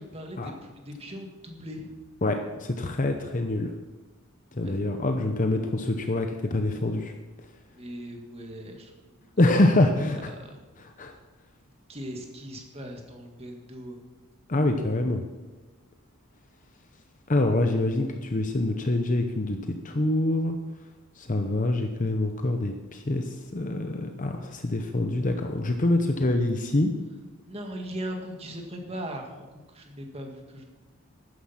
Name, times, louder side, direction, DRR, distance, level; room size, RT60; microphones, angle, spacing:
voice 1, 0.0-1.9 4.6-4.7 7.7-9.4 10.0-10.6 11.9-14.0 27.5-30.6, equal, 25° right, 2 dB, 1.9 m, -39 dB
voice 2, 2.2-3.7 4.5-7.1 9.4-10.3 11.0-11.1 14.5-15.2 17.3-20.6 21.2-26.9, left 2 dB, 35° left, 5 dB, 0.8 m, -25 dB
13.0 x 9.6 x 5.8 m, 1.2 s
head